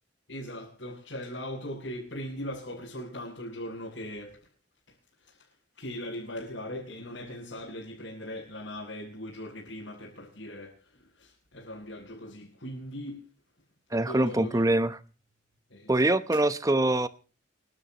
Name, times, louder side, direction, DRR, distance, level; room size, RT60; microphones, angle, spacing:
voice 1, 0.3-4.5 5.8-13.2 13.9-14.6 15.7-15.9, left 1 dB, 80° left, 7.8 m, -39 dB
voice 2, 13.9-15.0 15.9-17.1, right 2 dB, 20° right, 0.9 m, -24 dB
29.0 x 12.5 x 3.0 m
head